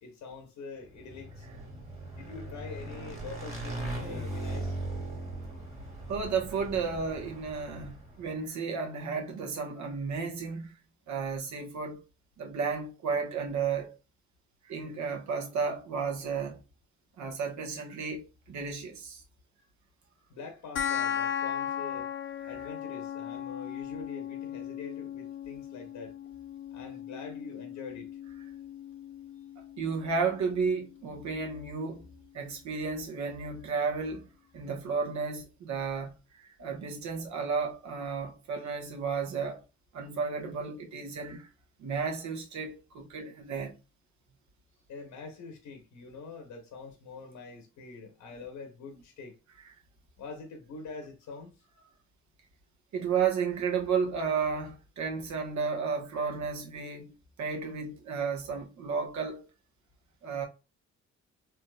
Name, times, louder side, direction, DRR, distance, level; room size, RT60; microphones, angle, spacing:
voice 1, 0.0-1.5 2.1-4.8 20.3-22.1 22.5-26.2 26.7-28.2 44.9-49.3 50.2-51.6, left 4 dB, 80° left, 0.9 m, -45 dB
Motorcycle / Engine, 0.9-8.3, right 2 dB, 20° right, 1.7 m, -39 dB
voice 2, 6.1-10.7 11.1-12.0 12.4-13.9 14.7-16.6 17.2-19.2 29.8-32.0 32.3-34.2 34.5-36.1 36.4-39.6 39.9-41.5 41.8-43.7 52.9-57.1 57.4-59.5 60.2-60.5, right 5 dB, 70° right, 1.2 m, -33 dB
sound 1, 20.8-31.7, left 9 dB, 40° left, 0.4 m, -37 dB
3.6 x 2.8 x 2.2 m
cardioid pair, 90°, 30 cm